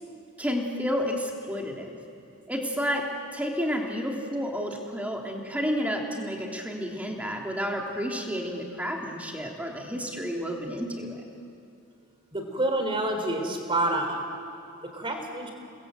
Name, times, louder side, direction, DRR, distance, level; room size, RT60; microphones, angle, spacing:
voice 1, 0.4-2.0 2.5-11.2, equal, 5° right, 0 dB, 2.8 m, -31 dB
voice 2, 12.3-14.2 14.8-15.5, right 1 dB, 25° right, 4 dB, 3.7 m, -28 dB
29.5 x 21.0 x 8.0 m, 2.6 s
head